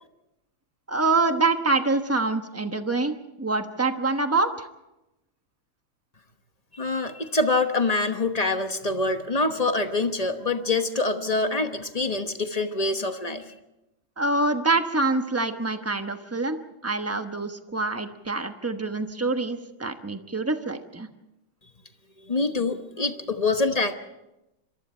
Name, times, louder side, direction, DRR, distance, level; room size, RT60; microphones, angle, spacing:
voice 1, 0.9-4.7 14.2-21.1, right 3 dB, 15° right, 7 dB, 0.6 m, -26 dB
voice 2, 6.7-13.4 22.2-23.9, left 3 dB, 30° left, 7 dB, 0.8 m, -25 dB
27.0 x 23.0 x 4.4 m, 0.93 s
omnidirectional pair, 2.2 m